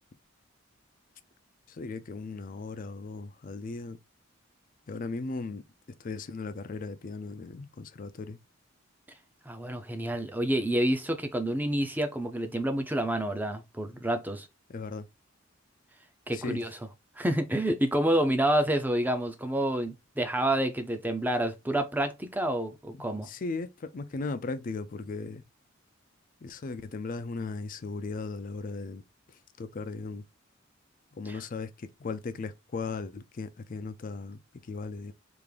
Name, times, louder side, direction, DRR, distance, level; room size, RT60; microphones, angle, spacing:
voice 1, 1.7-4.0 4.9-5.6 6.0-8.4 14.7-15.1 16.3-16.6 22.9-25.4 26.4-29.0 29.3-30.2 31.1-35.1, left 3 dB, 40° left, 0.4 m, -37 dB
voice 2, 9.5-14.5 16.3-16.7 17.2-23.3 31.3-31.4, right 1 dB, 10° right, 0.5 m, -28 dB
3.5 x 2.5 x 3.3 m
head